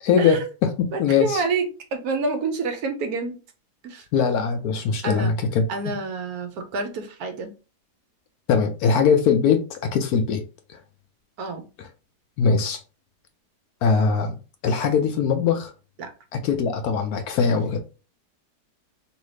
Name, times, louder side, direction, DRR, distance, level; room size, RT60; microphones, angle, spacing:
voice 1, 0.0-1.4 4.1-5.9 8.5-10.4 11.8-11.9 12.4-12.8 13.8-14.3 14.6-15.7 16.3-17.8, left 6 dB, 70° left, 1.0 m, -21 dB
voice 2, 0.9-1.7 1.9-3.3 3.8-4.0 5.0-5.3 5.7-7.5 11.4-11.6 16.0-16.1, right 4 dB, 70° right, 1.0 m, -28 dB
3.2 x 2.6 x 3.1 m
omnidirectional pair, 1.8 m